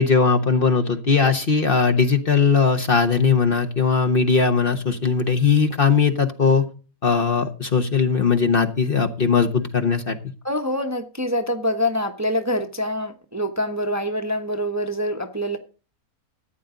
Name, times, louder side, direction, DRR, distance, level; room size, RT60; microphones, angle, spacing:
voice 1, 0.0-6.6 7.0-10.2, left 5 dB, 40° left, 7 dB, 1.2 m, -19 dB
voice 2, 10.4-15.6, left 1 dB, 15° right, 6 dB, 1.0 m, -25 dB
14.0 x 9.3 x 3.8 m, 0.36 s
omnidirectional pair, 1.5 m